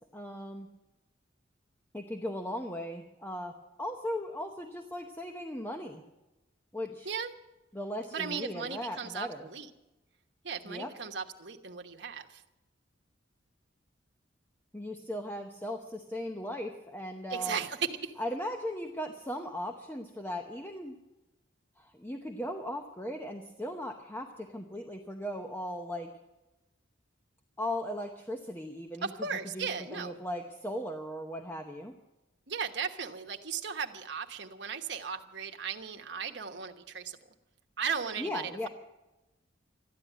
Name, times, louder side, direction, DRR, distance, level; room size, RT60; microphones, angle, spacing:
voice 1, 0.1-0.7 1.9-6.0 6.7-7.1 7.7-9.5 10.7-10.9 14.7-17.6 18.2-21.0 21.8-26.1 27.6-29.1 29.5-31.9 38.2-38.7, equal, 10° left, 4 dB, 0.8 m, -38 dB
voice 2, 8.1-9.7 10.4-12.4 17.3-18.2 29.0-30.2 32.5-37.2 37.8-38.7, right 6 dB, 65° right, 4 dB, 1.2 m, -36 dB
14.0 x 10.5 x 9.2 m, 1.0 s
head